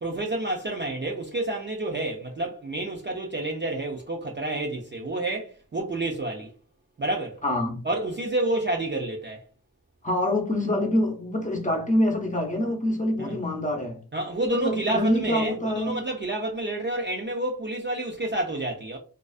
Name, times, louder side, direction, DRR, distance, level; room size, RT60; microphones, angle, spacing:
voice 1, 0.0-6.5 7.0-7.4 7.8-9.4 13.2-13.4 14.1-19.0, right 2 dB, 30° right, 0.4 m, -29 dB
voice 2, 7.4-7.8 10.0-14.0 14.5-16.0, left 1 dB, 20° left, 0.6 m, -25 dB
2.4 x 2.3 x 2.3 m
wide cardioid pair, 110°, 39 cm